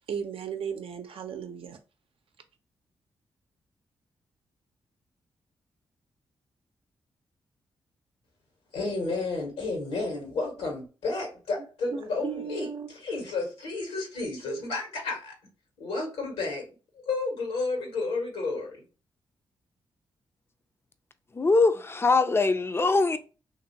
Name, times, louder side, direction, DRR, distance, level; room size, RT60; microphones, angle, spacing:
voice 1, 0.0-1.8 11.9-12.9, right 7 dB, 70° right, 0.6 m, -35 dB
voice 2, 8.7-12.7 12.9-15.3 15.8-16.6 17.1-18.8, left 3 dB, 85° left, 1.3 m, -31 dB
voice 3, 21.3-23.2, left 3 dB, 25° left, 0.5 m, -22 dB
3.0 x 2.6 x 2.7 m
supercardioid pair, 45°, 10 cm